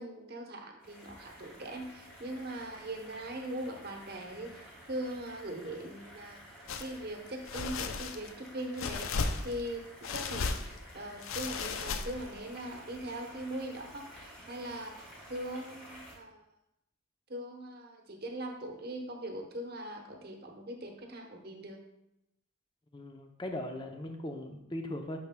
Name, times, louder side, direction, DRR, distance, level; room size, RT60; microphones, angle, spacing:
voice 1, 0.0-6.4 6.8-9.8 10.1-16.4 17.3-21.8, right 1 dB, 45° right, 2 dB, 0.9 m, -41 dB
sound 1, 0.8-16.1, equal, 5° left, 1.8 m, -52 dB
sound 2, 6.7-6.9 7.4-8.3 8.8-9.7 10.0-10.8 11.2-12.3, left 4 dB, 70° left, 0.5 m, -35 dB
voice 2, 22.9-25.2, left 1 dB, 20° left, 4 dB, 0.6 m, -39 dB
8.7 x 6.0 x 2.2 m, 0.86 s
head